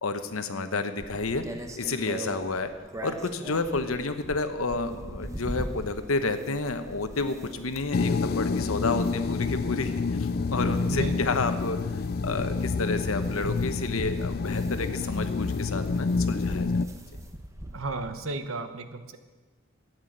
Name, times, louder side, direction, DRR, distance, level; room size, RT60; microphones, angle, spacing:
voice 1, 0.0-1.4 1.8-2.7 3.0-11.8 12.2-16.8, left 3 dB, 80° left, 9 dB, 1.1 m, -30 dB
sound 1, 1.0-18.2, right 1 dB, 15° right, 1.0 m, -42 dB
sound 2, 7.9-16.8, left 4 dB, 45° left, 0.4 m, -28 dB
voice 2, 17.7-19.2, right 3 dB, 75° right, 9 dB, 1.1 m, -33 dB
12.5 x 9.3 x 8.0 m, 1.3 s
head